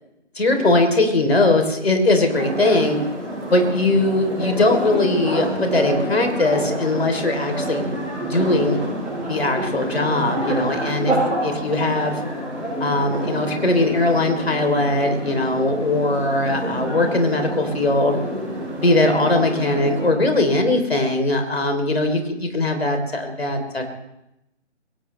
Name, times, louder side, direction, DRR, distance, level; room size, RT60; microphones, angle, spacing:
voice 1, 0.4-3.0 3.5-8.8 9.3-12.2 12.8-18.2 18.8-23.9, left 2 dB, 55° left, 5 dB, 3.5 m, -20 dB
sound 1, 2.3-20.1, right 1 dB, ahead, 7.5 m, -28 dB
22.0 x 18.5 x 3.3 m, 0.87 s
figure-of-eight pair, 160°, 36 cm